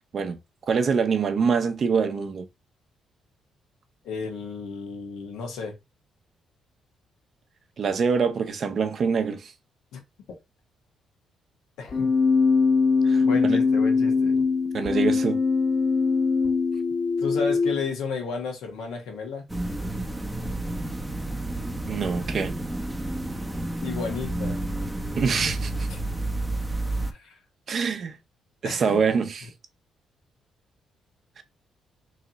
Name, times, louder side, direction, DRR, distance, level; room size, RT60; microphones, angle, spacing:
voice 1, 0.7-2.5 7.8-9.5 13.0-13.6 14.7-15.4 21.9-22.5 25.2-25.9 27.7-28.2 28.6-29.5 31.4-31.5, right 5 dB, 50° right, 0.7 m, -25 dB
voice 2, 4.0-5.7 9.9-10.0 11.8-12.1 13.2-14.4 17.2-19.4 23.8-24.6 25.9-26.0 27.2-27.3 28.6-29.0, left 5 dB, 85° left, 1.3 m, -33 dB
Keyboard (musical), 11.9-17.8, left 4 dB, 50° left, 1.5 m, -22 dB
sound 1, 19.5-27.1, right 1 dB, 5° right, 0.7 m, -30 dB
3.2 x 2.8 x 3.9 m
cardioid pair, 90°, 0 cm